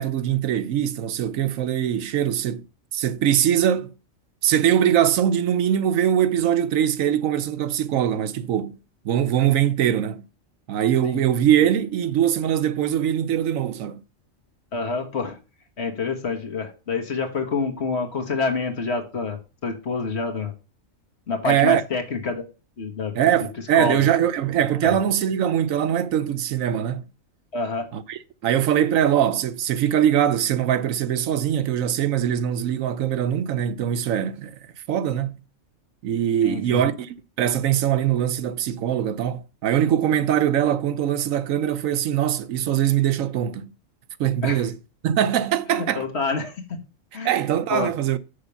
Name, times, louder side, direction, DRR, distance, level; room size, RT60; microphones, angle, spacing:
voice 1, 0.0-2.6 2.9-3.9 4.4-8.8 9.0-10.2 10.7-14.0 21.4-21.8 23.1-27.1 27.9-34.6 34.9-35.4 36.0-43.7 44.2-44.8 45.0-46.1 47.2-48.2, right 10 dB, 80° right, 1.1 m, -22 dB
voice 2, 14.7-15.4 15.8-20.5 21.3-22.4 22.8-23.2 23.7-24.0 24.8-25.0 27.5-27.9 36.4-36.8 44.4-44.6 45.7-46.8 47.1-47.3 47.7-47.9, left 4 dB, 55° left, 1.6 m, -27 dB
6.6 x 5.1 x 6.9 m
omnidirectional pair, 1.4 m